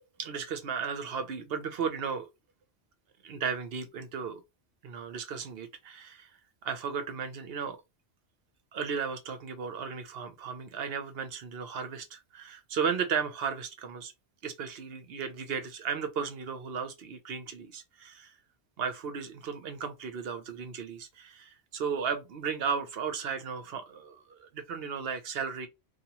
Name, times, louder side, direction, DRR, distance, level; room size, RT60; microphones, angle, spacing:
voice 1, 0.2-2.3 3.2-4.4 4.8-6.3 6.6-7.8 8.7-14.1 14.4-18.3 18.8-25.7, right 6 dB, 70° right, 0.9 m, -35 dB
2.8 x 2.3 x 2.8 m
omnidirectional pair, 1.1 m